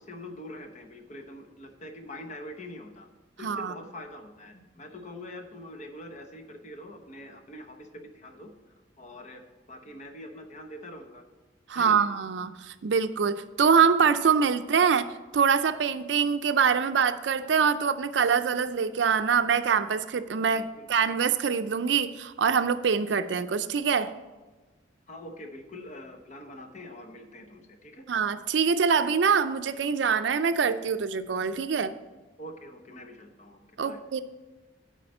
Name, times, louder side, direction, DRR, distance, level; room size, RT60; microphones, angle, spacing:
voice 1, 0.0-3.1 3.4-8.5 9.0-9.4 9.7-11.2 11.7-12.1 20.5-21.0 25.1-28.1 32.4-34.0, left 1 dB, 40° left, 5 dB, 0.9 m, -44 dB
voice 2, 3.4-3.7 11.7-15.1 15.3-24.1 28.1-31.9 33.8-34.2, right 6 dB, 70° right, 11 dB, 0.4 m, -24 dB
8.5 x 4.9 x 6.6 m, 1.2 s
head